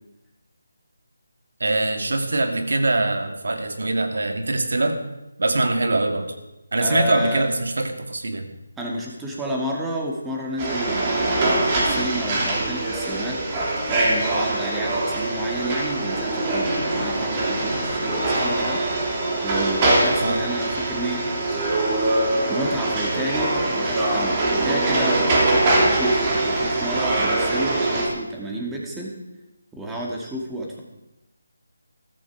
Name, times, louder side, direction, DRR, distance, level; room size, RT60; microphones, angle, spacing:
voice 1, 1.6-5.0 5.4-6.3 6.7-8.5 20.2-20.4, right 2 dB, 70° right, 6 dB, 2.2 m, -23 dB
voice 2, 6.8-7.5 8.8-18.9 19.1-21.3 21.5-21.8 22.5-25.5 25.8-29.1 29.7-30.8, right 1 dB, 5° right, -2 dB, 2.2 m, -31 dB
sound 1, 10.6-28.1, right 2 dB, 25° right, 3.3 m, -23 dB
14.0 x 14.0 x 4.8 m, 0.95 s
figure-of-eight pair, 160°, 0 cm